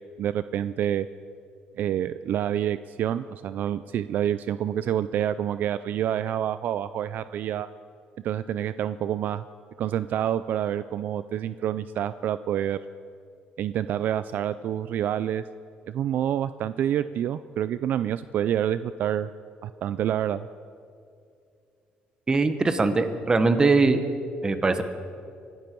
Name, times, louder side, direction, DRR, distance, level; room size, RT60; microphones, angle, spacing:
voice 1, 0.2-1.1 1.8-7.7 8.2-9.4 9.8-12.8 13.6-15.4 15.9-19.3 19.6-20.5, right 10 dB, 60° right, 14 dB, 0.4 m, -27 dB
voice 2, 22.3-24.0 24.4-24.8, right 3 dB, 20° right, 9 dB, 1.2 m, -21 dB
25.5 x 12.0 x 4.6 m, 2.4 s
cardioid pair, 120°, 3 cm